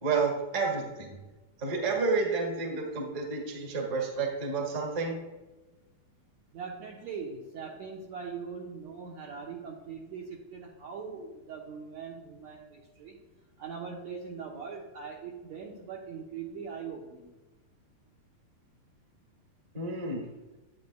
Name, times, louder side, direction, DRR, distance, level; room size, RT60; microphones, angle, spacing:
voice 1, 0.0-1.2 1.6-5.1 19.7-20.2, right 4 dB, 35° right, 0 dB, 1.2 m, -30 dB
voice 2, 6.5-13.2 13.6-17.3, right 5 dB, 70° right, -2 dB, 1.7 m, -41 dB
11.5 x 9.4 x 2.3 m, 1.1 s
omnidirectional pair, 4.1 m